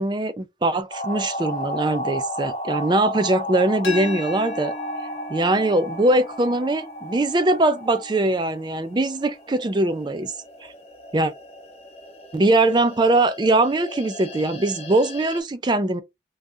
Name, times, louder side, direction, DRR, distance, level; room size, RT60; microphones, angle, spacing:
voice 1, 0.0-4.7 5.3-10.3 11.1-11.3 12.3-16.0, right 2 dB, 25° right, 0.4 m, -21 dB
sound 1, 0.9-15.4, equal, 35° left, 0.5 m, -34 dB
sound 2, 3.8-9.6, left 3 dB, 85° left, 1.1 m, -38 dB
2.6 x 2.4 x 3.4 m
head